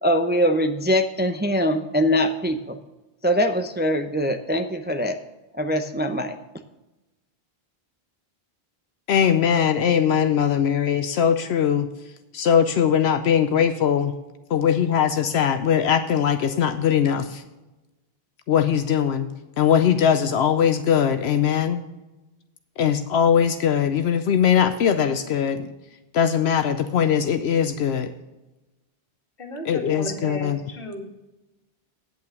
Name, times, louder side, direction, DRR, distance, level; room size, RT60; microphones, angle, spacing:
voice 1, 0.0-2.8 3.2-5.2 5.6-6.4, equal, 15° right, 6 dB, 0.5 m, -22 dB
voice 2, 9.1-11.9 12.3-14.1 14.5-17.4 18.5-19.3 19.6-21.8 22.8-25.7 26.1-28.1 29.6-30.6, left 8 dB, 80° left, 8 dB, 0.9 m, -20 dB
voice 3, 29.4-31.1, equal, 60° left, 1 dB, 2.2 m, -35 dB
9.0 x 8.5 x 6.5 m, 1.0 s
omnidirectional pair, 1.1 m